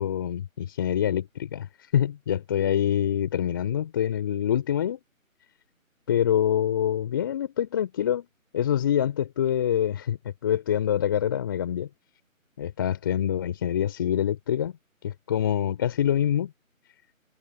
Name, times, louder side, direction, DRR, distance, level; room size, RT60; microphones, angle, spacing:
voice 1, 0.0-1.7 1.9-5.0 6.1-8.3 8.5-10.2 10.4-11.9 12.6-14.7 15.0-16.5, left 10 dB, 15° left, 2.9 m, -25 dB
figure-of-eight pair, 160°, 42 cm